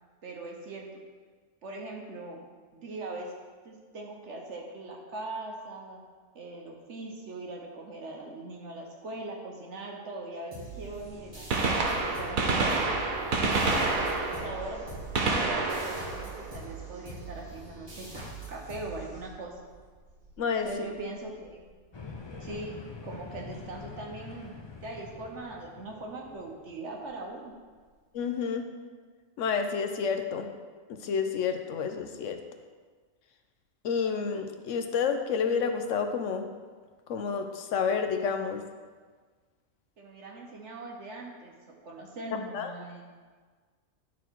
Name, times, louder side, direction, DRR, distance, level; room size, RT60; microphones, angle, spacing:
voice 1, 0.2-0.9 1.6-2.4 2.7-3.3 3.6-6.0 6.3-12.8 13.7-14.8 15.3-19.6 20.6-21.6 22.4-24.5 24.8-27.5 40.0-41.5 41.8-43.1, right 2 dB, 60° right, 0 dB, 1.2 m, -41 dB
sound 1, 10.5-19.7, right 3 dB, 20° right, 2.5 m, -44 dB
Gunshot gunfire, 10.8-10.9 11.3-17.2 19.2-19.3 20.3-20.4 22.0-22.1 23.5-23.6 23.8-23.9, right 3 dB, 85° right, 1.4 m, -29 dB
voice 2, 20.4-20.7 28.1-28.6 29.4-30.5 30.9-32.4 33.8-36.5 37.1-38.6 42.5-42.7, left 6 dB, 70° left, 6 dB, 0.9 m, -29 dB
sound 2, 21.9-27.2, left 4 dB, 35° left, 0.4 m, -45 dB
10.5 x 4.2 x 4.5 m, 1.5 s
omnidirectional pair, 1.4 m